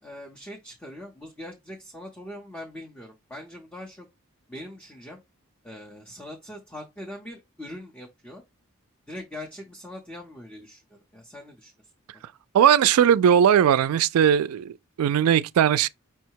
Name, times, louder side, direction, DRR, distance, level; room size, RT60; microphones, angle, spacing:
voice 1, 0.0-4.1 4.5-5.2 5.6-8.4 9.1-11.7 12.1-12.3, left 1 dB, 5° left, 0.7 m, -42 dB
voice 2, 12.5-15.9, right 9 dB, 90° right, 0.3 m, -19 dB
5.6 x 2.1 x 4.5 m
head